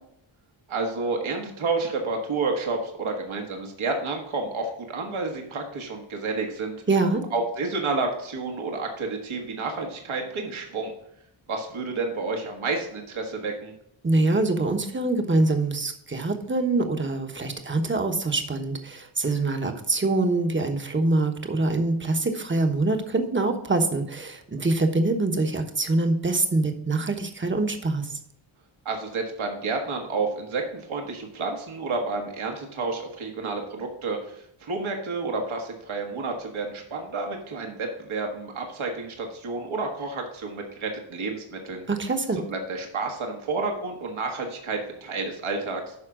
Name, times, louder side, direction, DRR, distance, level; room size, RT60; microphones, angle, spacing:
voice 1, 0.7-7.0 7.3-10.9 11.5-13.7 28.8-45.9, right 3 dB, 70° right, 2 dB, 1.7 m, -30 dB
voice 2, 6.9-7.2 14.0-28.2 41.9-42.4, right 2 dB, 25° right, 5 dB, 1.1 m, -24 dB
9.6 x 5.9 x 3.8 m, 0.75 s
wide cardioid pair, 120°, 49 cm